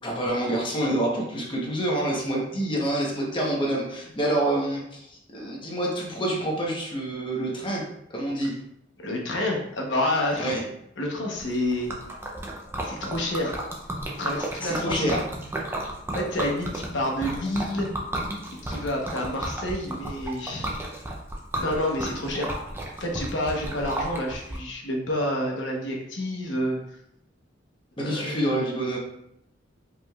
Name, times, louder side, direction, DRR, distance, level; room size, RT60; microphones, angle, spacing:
voice 1, 0.0-7.8 8.1-8.5 10.4-10.6 14.6-15.3 28.0-29.0, right 1 dB, 25° left, -3 dB, 0.9 m, -27 dB
voice 2, 9.0-10.6 11.0-11.9 12.8-13.6 14.2-15.2 16.1-17.9 18.6-20.7 21.6-22.5 23.0-26.8 28.0-28.4, left 1 dB, 75° left, -1 dB, 1.0 m, -28 dB
Liquid, 11.4-24.6, right 1 dB, 10° right, 0.5 m, -33 dB
5.0 x 3.2 x 2.3 m, 0.78 s
head